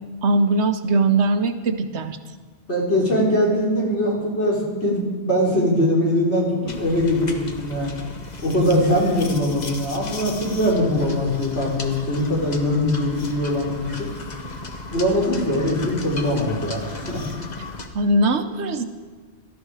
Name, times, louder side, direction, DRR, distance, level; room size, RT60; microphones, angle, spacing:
voice 1, 0.2-2.2 17.9-18.8, right 2 dB, 70° right, 9 dB, 1.1 m, -20 dB
voice 2, 2.7-7.9 8.4-14.1 14.9-17.2, left 1 dB, 65° left, -4 dB, 4.0 m, -22 dB
sound 1, 6.7-17.9, left 3 dB, 40° left, 1.2 m, -35 dB
17.5 x 13.5 x 4.8 m, 1.4 s
omnidirectional pair, 1.2 m